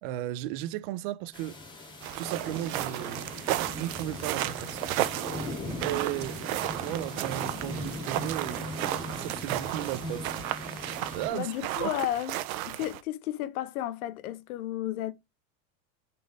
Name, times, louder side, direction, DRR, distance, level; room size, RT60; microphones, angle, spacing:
voice 1, 0.0-1.6 2.2-4.9 5.8-6.5 6.8-8.8 9.2-10.4 11.1-11.5 11.8-12.0, right 14 dB, 40° right, 0.4 m, -35 dB
sound 1, 1.3-11.3, left 2 dB, 10° left, 2.6 m, -39 dB
sound 2, 2.0-13.0, right 14 dB, 75° right, 0.9 m, -34 dB
voice 2, 11.3-12.4 12.6-15.1, left 14 dB, 80° left, 1.1 m, -33 dB
6.4 x 4.2 x 4.9 m
supercardioid pair, 165°, 43 cm